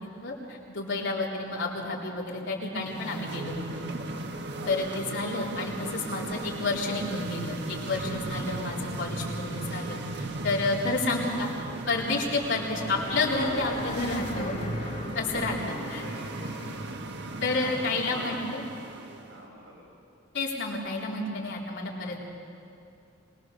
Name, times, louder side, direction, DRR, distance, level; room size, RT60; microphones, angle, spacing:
voice 1, 0.2-3.9 4.7-10.0 10.4-11.5 11.9-14.6 15.1-16.0 17.4-18.6 20.3-22.2, left 3 dB, 65° left, -3 dB, 3.9 m, -30 dB
sound 1, 2.7-19.4, right 2 dB, 60° right, 1.4 m, -37 dB
sound 2, 12.6-16.4, left 2 dB, 35° left, 1.5 m, -40 dB
voice 2, 15.5-16.7 17.5-18.3 19.3-19.7, right 1 dB, 80° right, -4 dB, 5.3 m, -43 dB
24.0 x 20.0 x 6.9 m, 2.5 s
head